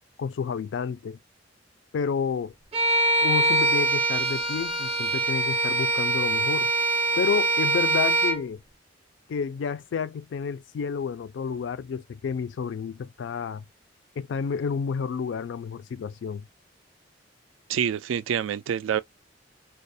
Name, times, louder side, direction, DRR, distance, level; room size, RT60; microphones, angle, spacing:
voice 1, 0.2-1.2 1.9-2.5 3.2-6.7 7.2-8.6 9.3-13.6 14.2-16.5, left 6 dB, 70° left, 0.3 m, -30 dB
Bowed string instrument, 2.7-8.4, right 2 dB, 30° right, 0.5 m, -24 dB
voice 2, 17.7-19.0, right 8 dB, 85° right, 0.3 m, -26 dB
2.3 x 2.0 x 2.6 m
head